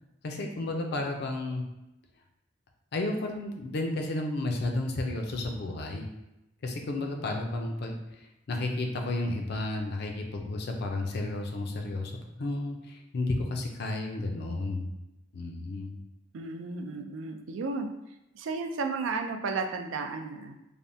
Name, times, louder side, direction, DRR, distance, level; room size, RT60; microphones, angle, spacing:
voice 1, 0.2-1.6 2.9-6.1 6.6-8.0 8.5-12.1 12.4-14.9 15.3-16.0, left 2 dB, 55° left, 2 dB, 0.4 m, -32 dB
voice 2, 16.3-17.9 18.3-20.6, right 4 dB, 80° right, 5 dB, 0.4 m, -33 dB
3.3 x 2.1 x 2.6 m, 0.91 s
head